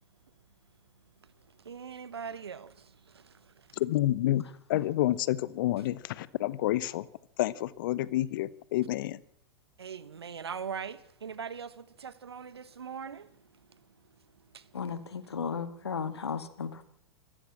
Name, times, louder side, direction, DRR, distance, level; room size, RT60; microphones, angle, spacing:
voice 1, 1.6-3.8 9.8-14.1 14.5-14.7 15.0-15.3, right 6 dB, 75° right, 1.4 m, -42 dB
voice 2, 3.8-4.4 4.7-7.1 7.4-9.2, left 15 dB, 55° left, 1.0 m, -29 dB
voice 3, 14.7-16.8, left 6 dB, 75° left, 1.8 m, -35 dB
26.0 x 14.5 x 7.4 m
figure-of-eight pair, 100°, 14 cm